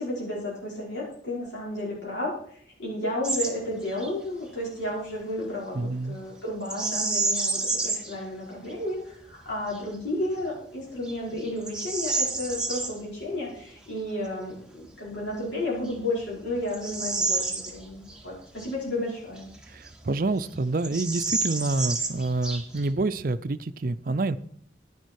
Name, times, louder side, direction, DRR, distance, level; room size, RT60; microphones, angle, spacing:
voice 1, 0.0-19.5, left 1 dB, 85° left, -5 dB, 5.4 m, -32 dB
Bird vocalization bird call bird song, 3.2-3.5 3.9-4.1 6.7-8.2 8.7-8.8 9.4-9.8 10.4-10.5 11.0-12.9 15.1-15.2 15.8-18.2 18.6-18.7 19.4-20.2 20.4-20.5 20.8-22.9, right 3 dB, 5° right, 1.3 m, -29 dB
voice 2, 5.7-6.2 19.7-24.4, right 2 dB, 50° right, 12 dB, 0.5 m, -27 dB
11.0 x 10.0 x 4.8 m, 0.63 s
head